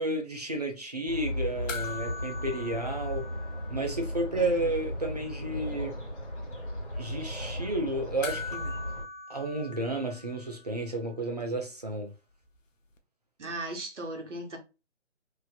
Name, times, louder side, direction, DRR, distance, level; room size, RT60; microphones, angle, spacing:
voice 1, 0.0-3.3 3.7-6.0 7.0-8.8 9.3-12.1, right 2 dB, 35° right, 0.5 m, -32 dB
sound 1, 1.1-9.0, left 1 dB, 45° left, 1.5 m, -36 dB
sound 2, 1.7-4.3 4.6-4.7 8.2-10.8 13.0-13.1, left 4 dB, 80° left, 0.7 m, -41 dB
voice 2, 4.4-4.7 13.4-14.6, right 1 dB, 70° right, 1.0 m, -37 dB
2.8 x 2.6 x 2.2 m
figure-of-eight pair, 155°, 37 cm